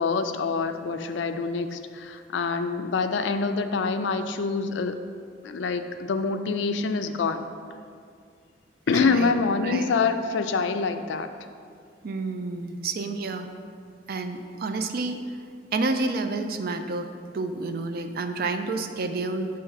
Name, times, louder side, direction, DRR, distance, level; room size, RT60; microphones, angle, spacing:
voice 1, 0.0-5.0 5.4-7.5 8.9-11.3, left 4 dB, 80° left, 8 dB, 0.4 m, -26 dB
voice 2, 8.9-9.3 9.6-9.9 12.0-13.5 14.1-15.2 15.7-17.1 17.3-19.5, right 3 dB, 55° right, 7 dB, 0.4 m, -29 dB
6.9 x 3.1 x 5.9 m, 2.3 s
head